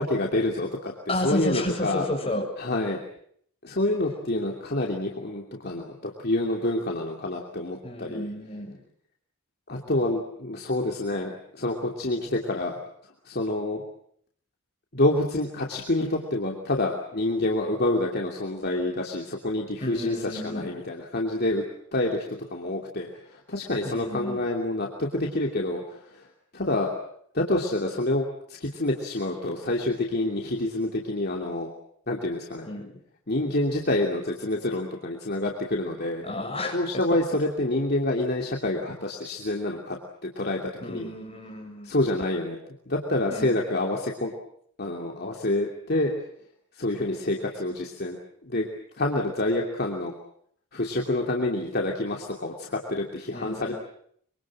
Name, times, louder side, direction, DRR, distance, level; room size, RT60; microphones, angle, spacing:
voice 1, 0.0-0.9 1.2-2.1 2.6-3.0 3.6-8.3 9.7-12.8 13.2-13.8 14.9-21.6 21.9-22.2 22.5-23.1 23.5-25.8 26.5-26.9 27.3-31.7 32.1-32.7 33.3-36.2 36.7-40.0 40.4-40.6 40.9-41.1 41.8-42.6 42.9-44.3 44.8-46.1 46.8-48.2 48.4-48.7 49.0-50.1 50.7-53.7, left 1 dB, 45° left, 0 dB, 2.8 m, -27 dB
voice 2, 1.1-2.4 7.8-8.8 19.8-20.8 23.8-24.5 32.6-33.0 36.2-36.8 40.8-41.9 43.3-43.6 53.3-53.7, left 1 dB, 25° left, 2 dB, 7.5 m, -32 dB
25.0 x 24.5 x 7.7 m, 0.66 s
head